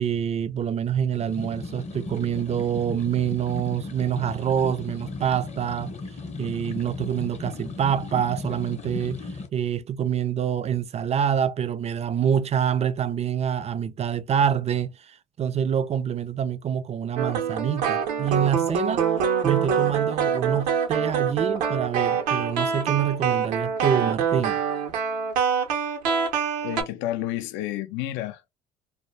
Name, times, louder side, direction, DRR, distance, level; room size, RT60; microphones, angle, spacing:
voice 1, 0.0-6.0 6.4-19.0 19.4-24.6, right 8 dB, 30° right, 0.4 m, -26 dB
sound 1, 1.1-9.5, left 3 dB, 30° left, 0.7 m, -36 dB
sound 2, 17.2-26.8, right 7 dB, 85° right, 0.6 m, -25 dB
voice 2, 26.6-28.5, left 14 dB, 65° left, 0.4 m, -30 dB
2.2 x 2.0 x 3.2 m
hypercardioid pair, 60°, 21 cm